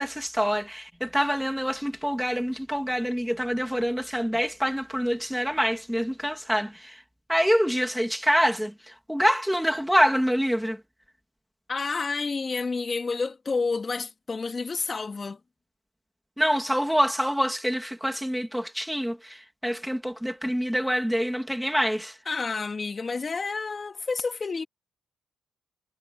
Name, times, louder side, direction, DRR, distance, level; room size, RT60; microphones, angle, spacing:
voice 1, 0.0-7.0 7.3-10.8 16.4-22.1, equal, ahead, 2.7 m, -26 dB
voice 2, 11.7-15.4 22.3-24.6, left 4 dB, 30° left, 2.6 m, -29 dB
cardioid pair, 90°, 0 cm